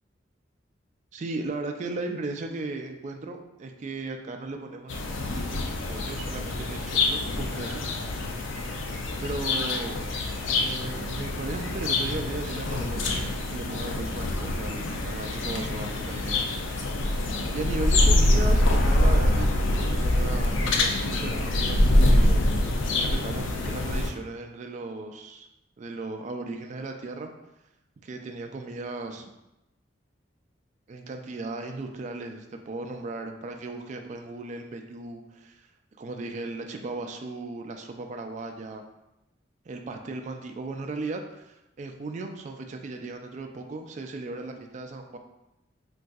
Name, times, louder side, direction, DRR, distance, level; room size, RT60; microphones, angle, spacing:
voice 1, 1.1-7.8 8.8-10.0 10.6-16.4 17.5-19.5 19.8-25.5 25.8-27.3 28.0-29.3 30.9-35.6 36.0-38.8 39.7-45.2, right 3 dB, 40° right, 4 dB, 0.3 m, -36 dB
sound 1, 4.9-24.1, left 1 dB, 80° left, 0.4 m, -25 dB
3.9 x 2.6 x 2.3 m, 0.91 s
head